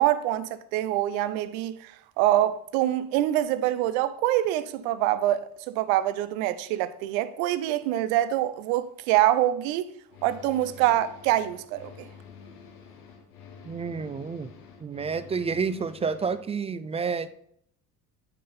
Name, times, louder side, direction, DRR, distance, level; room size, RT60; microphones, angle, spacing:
voice 1, 0.0-9.9 10.2-12.1, right 13 dB, 65° right, 0.7 m, -25 dB
sound 1, 10.1-16.5, left 6 dB, 75° left, 1.3 m, -48 dB
voice 2, 13.7-14.5 14.8-17.4, right 5 dB, 15° right, 0.3 m, -29 dB
8.5 x 3.8 x 5.5 m
hypercardioid pair, 60°, 45 cm